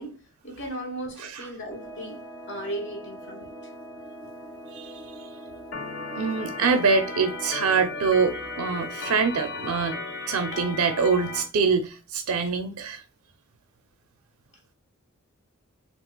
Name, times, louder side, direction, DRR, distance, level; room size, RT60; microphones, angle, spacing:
voice 1, 0.0-3.5, right 1 dB, 55° left, 1.1 m, -36 dB
sound 1, 1.7-11.0, equal, 10° left, 0.8 m, -43 dB
voice 2, 4.7-5.3 6.1-13.0, right 5 dB, 80° right, 0.4 m, -25 dB
Organ, 5.7-11.4, left 3 dB, 80° left, 1.0 m, -35 dB
3.8 x 2.4 x 2.2 m
head